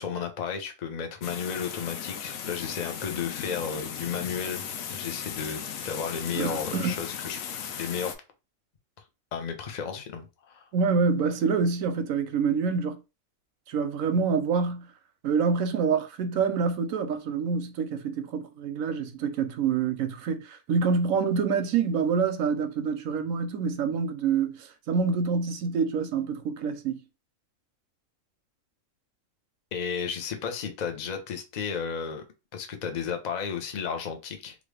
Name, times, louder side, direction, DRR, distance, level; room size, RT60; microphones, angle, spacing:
voice 1, 0.0-7.4 7.8-8.1 9.3-10.7 29.7-32.2 32.5-34.6, left 7 dB, 45° left, 0.6 m, -33 dB
sound 1, 1.2-8.2, left 7 dB, 85° left, 1.0 m, -37 dB
voice 2, 6.4-6.9 10.7-13.0 13.7-14.9 15.2-27.0, right 5 dB, 90° right, 1.0 m, -26 dB
3.1 x 2.5 x 3.2 m
omnidirectional pair, 1.4 m